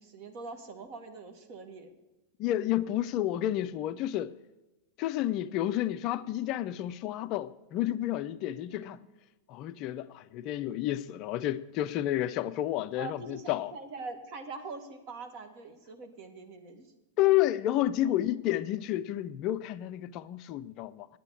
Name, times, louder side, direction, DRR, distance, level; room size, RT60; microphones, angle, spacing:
voice 1, 0.0-2.0 8.7-9.0 12.9-16.9 17.9-18.3, right 4 dB, 45° right, 1.8 m, -44 dB
voice 2, 2.4-4.4 5.0-9.0 9.5-13.7 17.2-21.1, left 13 dB, 40° left, 0.4 m, -30 dB
9.2 x 8.9 x 8.4 m
figure-of-eight pair, 90°, 0 cm